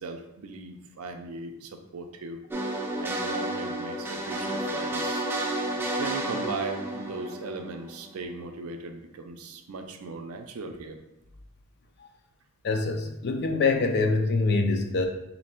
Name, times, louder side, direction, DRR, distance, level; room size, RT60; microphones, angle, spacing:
voice 1, 0.0-2.4 3.0-5.3 6.0-11.0, right 3 dB, 80° right, 6 dB, 0.5 m, -38 dB
sound 1, 2.5-8.3, right 1 dB, 10° right, 0.4 m, -31 dB
voice 2, 12.6-15.1, left 3 dB, 50° left, 5 dB, 0.4 m, -24 dB
3.2 x 2.7 x 4.3 m, 0.87 s
head